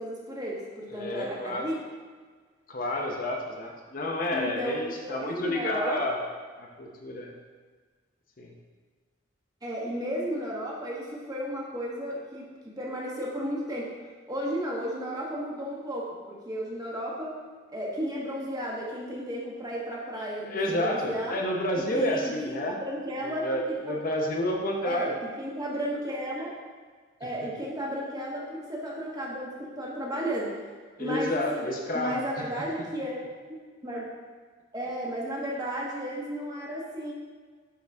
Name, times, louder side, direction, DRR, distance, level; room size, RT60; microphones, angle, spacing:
voice 1, 0.0-1.8 4.3-6.2 9.6-13.9 14.3-17.4 17.7-21.4 21.7-22.6 22.8-24.0 24.8-26.6 27.2-30.5 31.0-31.7 31.9-33.2 33.5-34.1 34.7-37.1, equal, 20° right, -4 dB, 1.2 m, -34 dB
voice 2, 0.9-1.7 2.7-6.2 6.6-7.4 8.4-8.5 20.4-22.8 23.2-25.1 31.0-32.5, left 1 dB, 45° left, 0 dB, 0.8 m, -30 dB
10.5 x 4.0 x 3.5 m, 1.5 s
head